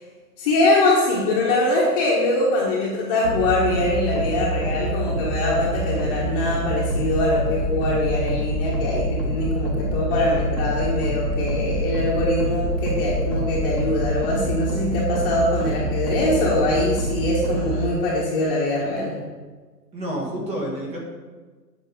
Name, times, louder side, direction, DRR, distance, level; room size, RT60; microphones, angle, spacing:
voice 1, 0.4-19.1, left 2 dB, 25° left, -7 dB, 1.5 m, -22 dB
sound 1, 3.2-17.9, right 1 dB, 75° right, 2.0 m, -26 dB
voice 2, 19.9-21.0, equal, 10° right, -2 dB, 1.5 m, -29 dB
8.9 x 6.1 x 5.3 m, 1.4 s
hypercardioid pair, 145°, 50 cm